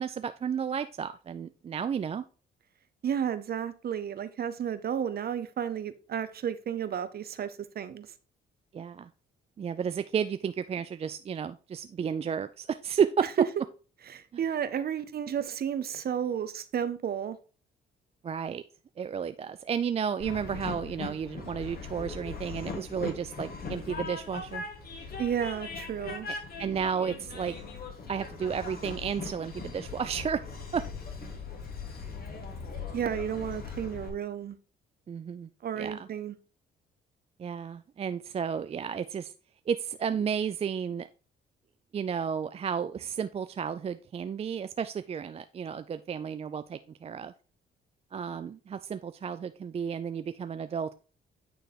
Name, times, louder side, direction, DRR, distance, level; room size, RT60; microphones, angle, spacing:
voice 1, 0.0-2.2 8.7-9.1 9.6-13.3 18.2-18.6 19.0-24.6 26.6-27.6 28.1-30.4 30.7-30.9 35.1-35.5 35.8-36.1 37.4-39.3 39.7-41.1 41.9-47.3 48.1-50.9, right 7 dB, 30° right, 0.3 m, -32 dB
voice 2, 3.0-8.1 13.4-13.5 14.1-17.4 25.2-26.3 32.9-34.6 35.6-36.4, right 8 dB, 50° right, 0.8 m, -32 dB
Train, 20.2-34.1, left 4 dB, 50° left, 1.8 m, -40 dB
9.1 x 3.3 x 4.0 m
cardioid pair, 90°, 20 cm